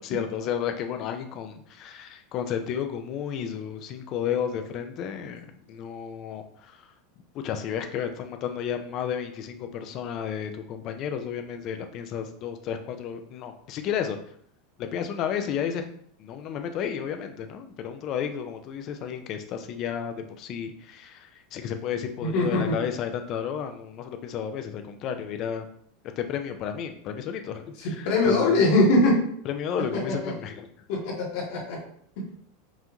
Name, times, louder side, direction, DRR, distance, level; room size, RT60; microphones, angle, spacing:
voice 1, 0.0-6.9 7.4-14.2 14.8-15.9 16.2-25.7 26.2-28.6 29.4-30.7, left 8 dB, 35° left, 7 dB, 0.5 m, -32 dB
voice 2, 22.2-22.6 28.0-29.2 30.9-31.8, left 2 dB, 55° left, -3 dB, 1.4 m, -21 dB
5.5 x 2.5 x 3.0 m, 0.63 s
supercardioid pair, 160°, 0 cm